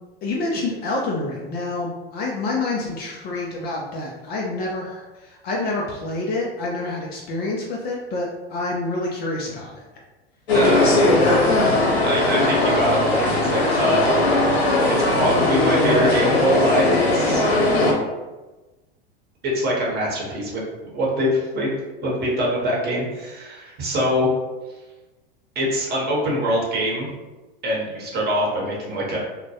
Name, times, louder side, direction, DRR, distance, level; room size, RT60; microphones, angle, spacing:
voice 1, 0.2-9.8, left 2 dB, 30° left, -2 dB, 0.4 m, -27 dB
sound 1, 10.5-17.9, left 2 dB, 90° left, 0.7 m, -19 dB
voice 2, 10.5-11.0 12.0-14.1 15.1-17.5 19.4-20.6 20.9-21.7 22.0-24.3 25.5-27.1 27.6-29.2, equal, 30° right, -3 dB, 0.9 m, -23 dB
2.2 x 2.0 x 2.8 m, 1.2 s
hypercardioid pair, 100°, 31 cm